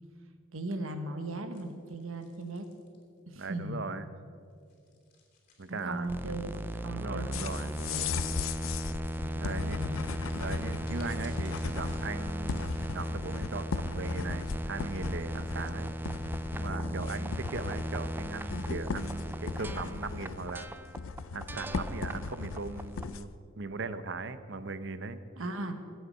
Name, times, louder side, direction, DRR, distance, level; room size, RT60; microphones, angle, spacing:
voice 1, 0.5-2.7 3.3-3.9 5.7-8.2 9.2-10.0 16.9-17.3 25.4-25.7, right 1 dB, 70° right, 7 dB, 1.3 m, -38 dB
sound 1, 1.5-3.5 4.5-8.3 10.2-12.9, left 4 dB, 40° left, 3.2 m, -60 dB
voice 2, 3.4-4.1 5.6-6.1 6.9-7.7 9.4-9.8 10.4-15.9 16.5-20.7 21.3-25.2, right 3 dB, 55° right, 12 dB, 0.7 m, -39 dB
sound 2, 6.1-23.2, equal, 10° right, 0.3 m, -37 dB
sound 3, 7.3-23.3, left 5 dB, 70° left, 0.5 m, -38 dB
23.0 x 8.0 x 5.6 m, 2.4 s
head